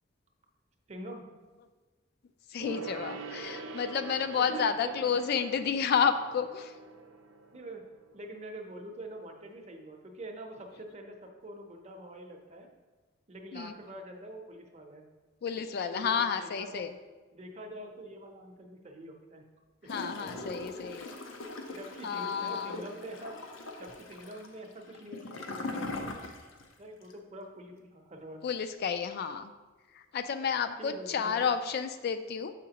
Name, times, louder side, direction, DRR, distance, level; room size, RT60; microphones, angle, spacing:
voice 1, 0.9-1.2 4.4-5.0 7.5-7.8 8.1-12.7 13.3-15.1 15.9-16.9 17.3-19.5 19.8-20.6 21.7-23.3 23.8-26.2 26.8-28.4 30.8-31.5, right 1 dB, 35° right, 3 dB, 0.7 m, -45 dB
voice 2, 2.5-6.7 13.5-13.7 15.4-16.9 19.9-21.1 22.0-22.8 28.4-29.5 29.9-32.5, left 6 dB, 55° left, 9 dB, 0.3 m, -31 dB
Gong, 2.6-8.5 8.8-8.9, right 3 dB, 80° right, 0.5 m, -44 dB
Gurgling / Toilet flush, 19.9-26.7 27.0-27.1, left 2 dB, 85° left, 0.7 m, -41 dB
7.1 x 5.0 x 2.9 m, 1.3 s
head